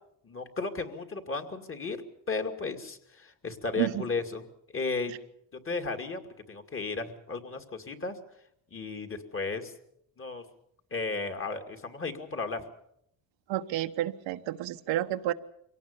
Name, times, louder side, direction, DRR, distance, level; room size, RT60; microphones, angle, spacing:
voice 1, 0.2-2.0 2.3-4.5 4.7-5.1 5.5-6.2 6.5-8.2 8.7-9.7 10.2-10.4 10.9-12.7, left 3 dB, 30° left, 6 dB, 2.5 m, -34 dB
voice 2, 13.5-15.3, right 13 dB, 80° right, 8 dB, 1.2 m, -30 dB
24.0 x 18.0 x 6.9 m, 0.74 s
cardioid pair, 115°, 44 cm